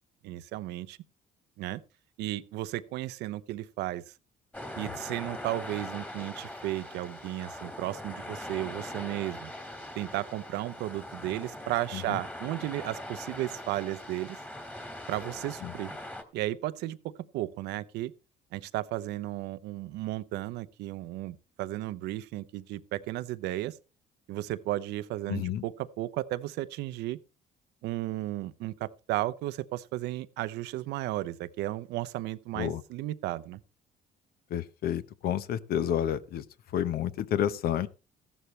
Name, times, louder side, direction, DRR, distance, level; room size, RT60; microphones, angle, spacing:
voice 1, 0.2-1.0 1.6-1.8 2.2-4.1 4.8-9.5 10.0-14.4 15.1-15.9 16.3-18.1 18.5-23.8 24.3-27.2 27.8-33.6, right 16 dB, 85° right, 0.7 m, -34 dB
sound 1, 4.5-16.2, left 1 dB, 10° left, 1.9 m, -41 dB
voice 2, 25.3-25.6 32.5-32.8 34.5-36.4 36.7-37.9, left 10 dB, 65° left, 0.9 m, -30 dB
14.5 x 11.5 x 3.2 m
cardioid pair, 110°, 17 cm